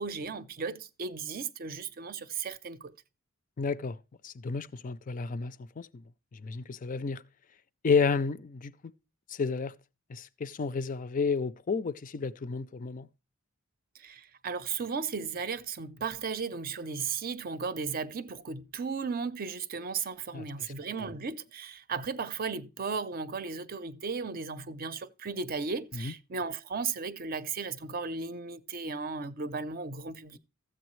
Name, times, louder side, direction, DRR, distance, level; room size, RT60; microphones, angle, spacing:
voice 1, 0.0-2.9 13.9-30.4, right 5 dB, 45° right, 0.6 m, -35 dB
voice 2, 3.6-4.0 4.2-5.9 6.3-7.2 7.8-8.9 9.3-9.7 10.1-13.1 20.3-20.4 21.0-21.1 25.9-26.1, left 5 dB, 40° left, 0.4 m, -31 dB
14.0 x 7.9 x 3.1 m
head